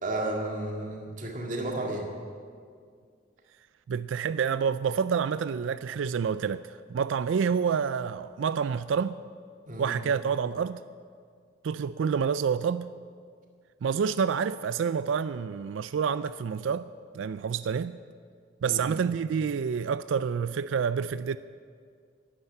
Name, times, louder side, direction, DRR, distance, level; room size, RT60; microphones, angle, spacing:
voice 1, 0.0-2.1 9.7-10.0 18.6-18.9, right 2 dB, 40° right, 2.0 m, -33 dB
voice 2, 3.9-9.2 9.8-10.8 11.6-12.9 13.8-16.9 17.1-18.0 18.6-21.4, right 6 dB, 80° right, 0.3 m, -28 dB
12.5 x 9.9 x 9.6 m
head